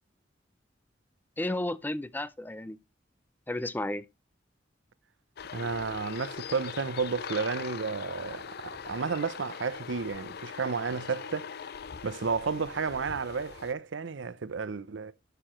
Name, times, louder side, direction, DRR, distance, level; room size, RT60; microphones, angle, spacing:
voice 1, 1.4-2.8 3.5-4.0, left 1 dB, 10° left, 0.5 m, -33 dB
sound 1, 5.4-13.7, left 7 dB, 60° left, 0.5 m, -41 dB
voice 2, 5.5-11.6 12.0-15.1, right 5 dB, 80° right, 0.6 m, -32 dB
11.5 x 6.8 x 3.0 m
head